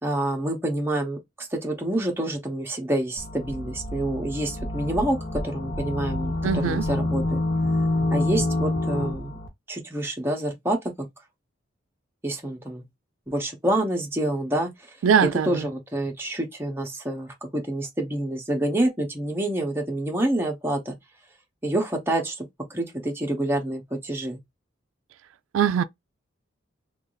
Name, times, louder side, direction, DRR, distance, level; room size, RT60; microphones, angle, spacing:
voice 1, 0.0-5.2 5.4-7.4 8.1-9.3 9.7-11.1 12.2-12.8 13.3-14.7 15.2-21.0 21.6-22.4 22.7-24.4, right 1 dB, 10° right, 0.8 m, -27 dB
sound 1, 3.2-9.5, left 2 dB, 60° left, 1.0 m, -27 dB
voice 2, 6.4-6.8 15.0-15.7 25.5-25.8, right 7 dB, 90° right, 0.3 m, -21 dB
3.0 x 2.6 x 3.8 m
head